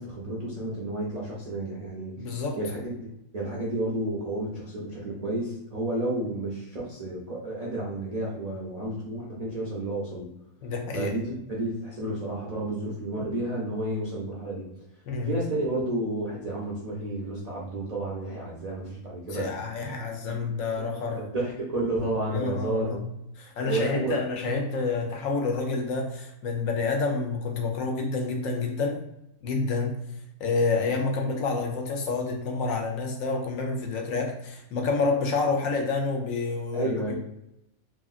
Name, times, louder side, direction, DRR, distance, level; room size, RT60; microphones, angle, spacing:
voice 1, 0.0-2.1 2.6-10.3 10.9-14.6 15.3-19.5 20.3-20.5 20.7-20.9 21.2-23.0 23.6-24.2 36.7-37.2, right 1 dB, 70° right, -5 dB, 0.3 m, -31 dB
voice 2, 2.2-2.6 10.6-11.1 15.1-15.4 19.3-21.3 22.3-23.0 23.4-29.0 29.4-30.0 30.4-37.2, left 3 dB, 65° left, 2 dB, 0.9 m, -28 dB
2.8 x 2.7 x 2.4 m, 0.83 s
omnidirectional pair, 1.6 m